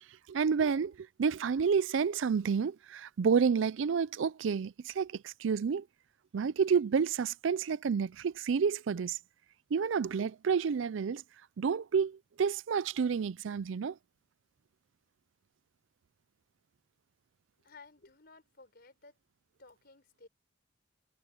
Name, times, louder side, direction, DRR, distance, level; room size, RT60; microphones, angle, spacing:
voice 1, 0.3-5.8 6.3-9.2 9.7-11.2 11.6-14.0, right 6 dB, 70° right, 0.4 m, -30 dB
voice 2, 17.6-19.2 19.6-20.3, left 3 dB, 55° left, 4.5 m, -56 dB
head